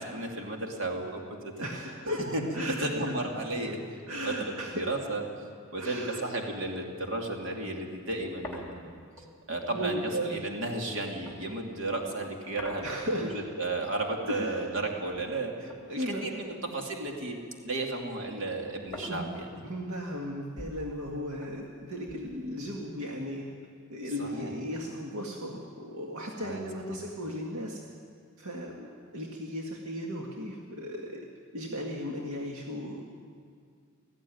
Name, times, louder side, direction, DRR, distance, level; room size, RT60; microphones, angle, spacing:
voice 1, 0.0-1.4 2.1-2.4 2.8-3.8 4.2-5.2 5.7-8.9 9.5-12.9 13.2-17.4 17.6-19.6 24.2-24.5 26.4-26.6, right 2 dB, 65° right, 1 dB, 2.8 m, -33 dB
voice 2, 1.6-2.2 2.5-3.1 4.1-4.8 5.8-6.2 9.7-10.4 12.8-13.3 14.3-14.7 15.9-16.2 19.1-19.3 19.6-23.5 23.9-27.8 28.4-31.3 31.5-33.0, equal, 80° right, -1 dB, 2.0 m, -36 dB
sound 1, 6.7-6.9 7.3-7.4 7.6-12.0 12.6-13.7 14.0-15.4 15.7-17.4 17.7-22.9, left 1 dB, 10° left, 2.8 m, -49 dB
18.5 x 14.5 x 9.5 m, 2.1 s
head